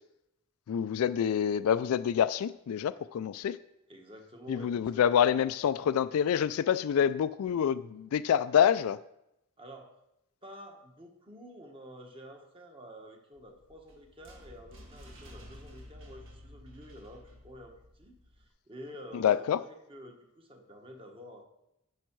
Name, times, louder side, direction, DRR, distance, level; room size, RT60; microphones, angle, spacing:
voice 1, 0.7-3.6 4.5-9.0 19.1-19.6, left 8 dB, 80° left, 0.3 m, -27 dB
voice 2, 3.9-5.3 9.6-9.9 10.4-21.4, equal, 25° right, 1.4 m, -49 dB
sound 1, 13.3-18.5, equal, 60° right, 1.7 m, -52 dB
10.5 x 6.4 x 4.6 m
head